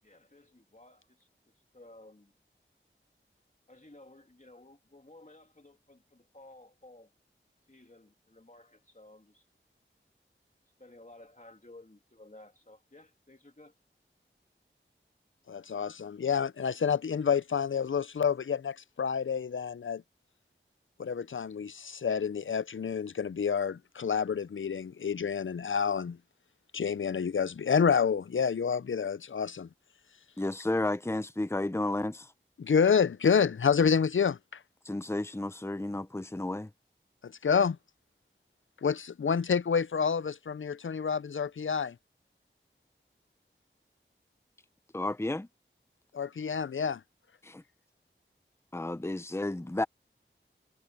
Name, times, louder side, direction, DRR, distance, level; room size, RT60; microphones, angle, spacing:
voice 1, 0.0-1.3 1.7-2.3 3.7-7.1 7.7-9.5 10.8-13.7, left 2 dB, 35° left, 2.5 m, -55 dB
voice 2, 15.5-20.0 21.0-26.2 26.7-29.7 32.6-34.6 37.2-37.8 38.8-42.0 46.1-47.0, left 6 dB, 75° left, 0.5 m, -28 dB
voice 3, 30.4-32.3 34.8-36.7 44.9-45.5 47.4-47.6 48.7-49.8, left 2 dB, 10° left, 0.7 m, -32 dB
wide cardioid pair, 50°, 21 cm